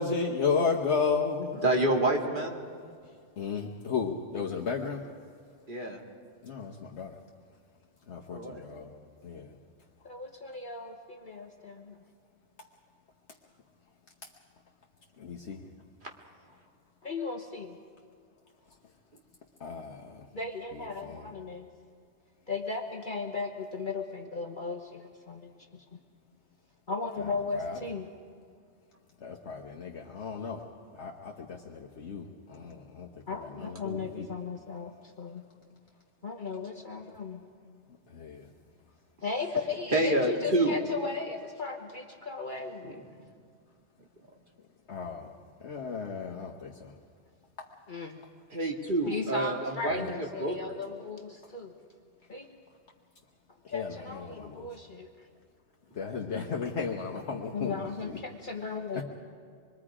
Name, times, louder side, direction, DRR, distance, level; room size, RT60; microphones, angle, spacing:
voice 1, 0.0-1.6 3.4-5.0 6.5-6.7 7.0-7.1 8.1-8.4 8.6-8.9 9.3-9.4 15.3-15.6 19.6-19.9 21.0-21.2 27.5-27.8 29.2-30.6 31.0-31.3 32.0-32.2 32.6-32.7 33.6-34.2 38.2-38.3 44.9-45.2 45.6-46.5 50.0-50.1 53.7-54.3 56.0-58.2 59.0-59.1, left 5 dB, 65° left, 0 dB, 1.4 m, -32 dB
voice 2, 1.6-2.6 5.7-6.0 8.3-8.6 39.9-40.8 48.5-50.6, right 1 dB, 40° right, 1 dB, 2.2 m, -28 dB
voice 3, 10.0-12.0 17.0-17.8 20.3-21.7 22.5-25.8 26.9-28.1 33.3-35.4 36.2-37.5 39.2-43.0 47.9-48.2 49.1-51.7 52.3-52.6 53.7-55.1 57.3-59.0, left 4 dB, 40° left, 3 dB, 1.2 m, -36 dB
26.5 x 22.5 x 5.0 m, 2.1 s
omnidirectional pair, 1.3 m